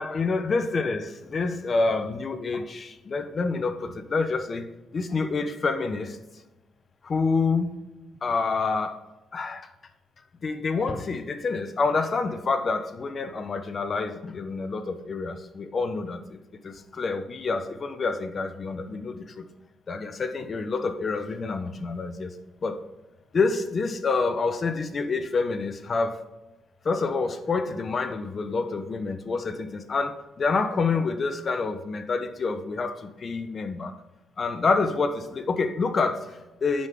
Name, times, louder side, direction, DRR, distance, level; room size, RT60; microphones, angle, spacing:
voice 1, 0.0-6.2 7.0-7.8 8.2-9.0 9.3-9.7 10.4-16.4 16.6-19.4 19.9-22.3 22.6-22.8 23.3-26.2 26.8-34.0 34.4-36.9, left 4 dB, 40° left, 9 dB, 0.9 m, -27 dB
8.8 x 5.7 x 3.6 m, 1.1 s
cardioid pair, 90°, 0 cm